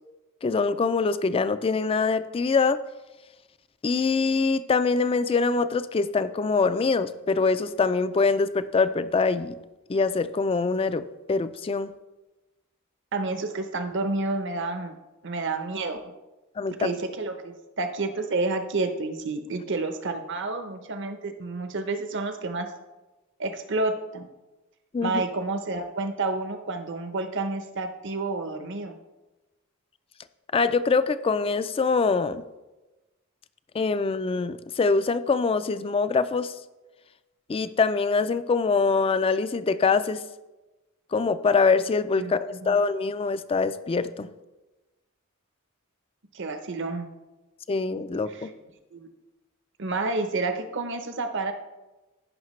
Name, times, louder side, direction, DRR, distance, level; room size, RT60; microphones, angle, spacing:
voice 1, 0.4-2.8 3.8-9.6 9.9-11.9 16.6-16.9 24.9-25.2 30.5-32.4 33.7-36.5 37.5-40.2 41.1-44.3 47.7-48.5, left 4 dB, 25° left, 13 dB, 0.3 m, -24 dB
voice 2, 13.1-14.9 15.2-16.0 16.8-22.7 23.4-24.3 25.0-28.9 42.2-42.8 46.3-47.1 48.3-48.5 48.9-49.1 49.8-51.5, right 3 dB, 60° right, 7 dB, 0.9 m, -30 dB
15.0 x 5.7 x 3.2 m, 1.1 s
head